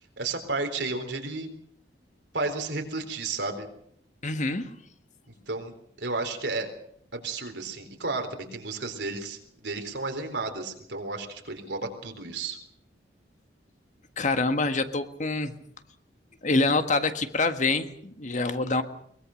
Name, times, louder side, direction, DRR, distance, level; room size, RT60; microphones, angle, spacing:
voice 1, 0.2-1.5 2.3-3.7 5.5-5.7 6.0-6.7 7.1-12.6, right 3 dB, 80° right, 5 dB, 3.9 m, -32 dB
voice 2, 4.2-4.7 14.2-15.5 16.4-18.8, left 3 dB, 45° left, 9 dB, 1.7 m, -26 dB
22.5 x 21.0 x 6.5 m, 0.69 s
head